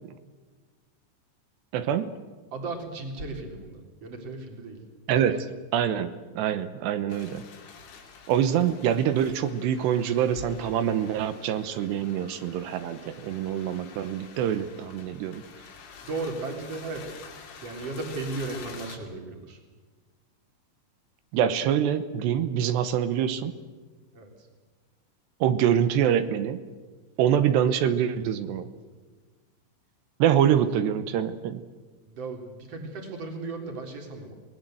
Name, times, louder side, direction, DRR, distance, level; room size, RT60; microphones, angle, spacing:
voice 1, 1.7-2.1 5.1-5.5 5.7-6.1 6.4-7.4 8.3-15.4 21.3-23.5 25.4-26.6 27.2-28.7 30.2-31.6, right 9 dB, 75° right, 12 dB, 3.1 m, -25 dB
voice 2, 2.5-4.8 5.2-5.3 16.0-17.1 17.6-19.6 24.1-24.5 32.1-34.3, right 3 dB, 35° right, 3 dB, 4.4 m, -36 dB
sound 1, 7.1-19.0, left 5 dB, 80° left, 5.1 m, -47 dB
26.5 x 20.0 x 7.8 m, 1.4 s
omnidirectional pair, 5.1 m